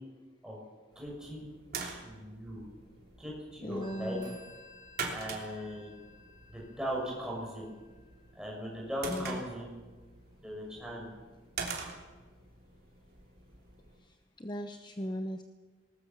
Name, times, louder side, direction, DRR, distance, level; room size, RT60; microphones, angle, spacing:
voice 1, 0.9-1.5 1.8-2.6 3.2-4.2 5.1-5.9 6.5-7.7 8.3-9.7 10.4-11.1, equal, 5° right, -3 dB, 6.6 m, -39 dB
sound 1, 0.9-14.0, right 4 dB, 50° right, 3.4 m, -45 dB
voice 2, 3.6-4.4 9.1-9.4 14.0-15.4, equal, 25° left, 6 dB, 0.9 m, -38 dB
Telephone, 3.8-9.1, left 2 dB, 25° right, 3.9 m, -57 dB
19.5 x 19.5 x 7.3 m, 1.3 s
head